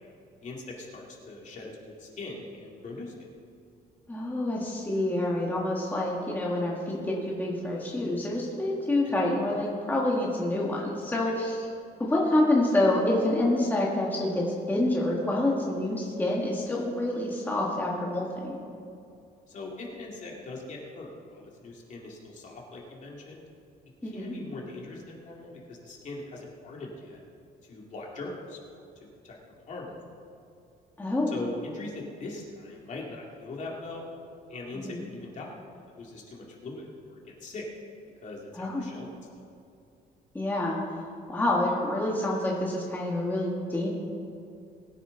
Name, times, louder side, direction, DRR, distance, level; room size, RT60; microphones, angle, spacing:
voice 1, 0.4-3.1 11.2-11.3 19.5-23.4 24.0-27.2 27.6-28.9 29.2-30.3 31.3-34.1 34.5-35.6 35.9-37.7 38.2-39.1, left 2 dB, 45° left, -2 dB, 2.5 m, -41 dB
voice 2, 4.1-11.6 12.0-18.6 24.0-24.4 31.0-31.3 34.7-35.1 38.6-38.9 40.3-40.8 41.3-43.9, left 1 dB, 10° left, -4 dB, 1.8 m, -27 dB
21.0 x 9.4 x 4.0 m, 2.5 s
cardioid pair, 160°, 18 cm